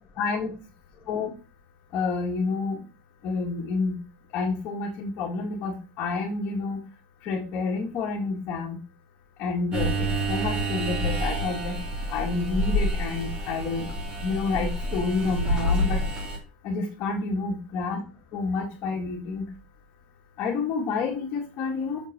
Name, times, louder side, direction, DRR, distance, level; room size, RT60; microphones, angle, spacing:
voice 1, 0.2-0.5 1.1-1.3 1.9-2.8 3.2-3.9 4.3-6.8 7.2-8.8 9.4-11.8 12.1-13.9 14.2-16.0 16.6-18.0 18.3-19.4 20.4-22.0, left 4 dB, 45° left, -3 dB, 2.1 m, -29 dB
sound 1, 9.7-16.4, equal, 20° right, 3.2 m, -28 dB
6.8 x 4.5 x 6.7 m, 0.33 s
cardioid pair, 150°, 4 cm